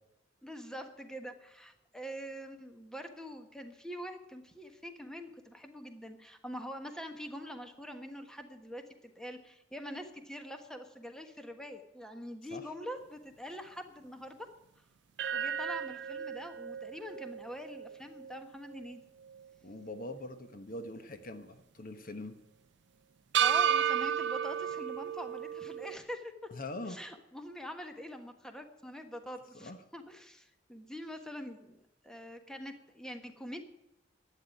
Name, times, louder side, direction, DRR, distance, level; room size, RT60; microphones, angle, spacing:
voice 1, 0.4-14.5 15.3-19.0 23.4-26.5 26.9-33.6, equal, 5° left, 6 dB, 1.3 m, -44 dB
sound 1, 15.2-19.5 19.8-19.9 23.3-26.0, right 9 dB, 70° right, 0.4 m, -33 dB
voice 2, 19.6-22.4 26.5-27.0 29.5-29.8, left 2 dB, 50° left, 9 dB, 1.1 m, -43 dB
11.5 x 8.9 x 9.9 m, 0.89 s
head